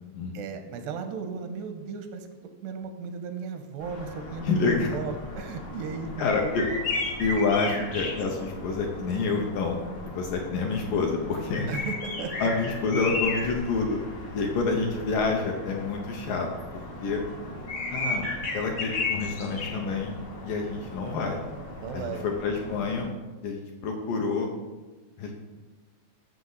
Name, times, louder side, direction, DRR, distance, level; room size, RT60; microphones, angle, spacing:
voice 1, 0.3-2.3 2.6-6.1 6.4-6.5 11.7-12.5 21.8-22.2, right 5 dB, 90° right, 6 dB, 3.0 m, -35 dB
sound 1, 3.8-23.1, left 3 dB, 55° left, 1.3 m, -35 dB
voice 2, 4.4-5.0 6.2-6.7 7.2-11.7 12.4-14.0 14.3-16.5 17.0-17.2 17.9-18.3 18.5-20.1 20.4-21.4 21.9-23.1 23.4-24.5 25.2-25.3, left 4 dB, 70° left, 1 dB, 2.2 m, -28 dB
14.0 x 6.2 x 4.0 m, 1.2 s
omnidirectional pair, 4.7 m